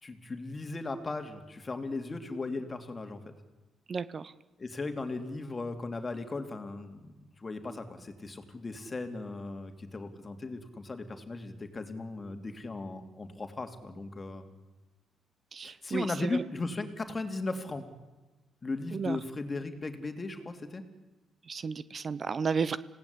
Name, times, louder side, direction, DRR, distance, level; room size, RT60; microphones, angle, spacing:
voice 1, 0.0-3.2 4.6-14.5 15.6-17.9 18.6-20.8, left 3 dB, 30° left, 7 dB, 2.8 m, -37 dB
voice 2, 3.9-4.3 15.5-16.4 18.9-19.2 21.5-22.8, right 5 dB, 40° right, 16 dB, 0.8 m, -33 dB
26.5 x 17.5 x 8.6 m, 1.2 s
cardioid pair, 90°, 0 cm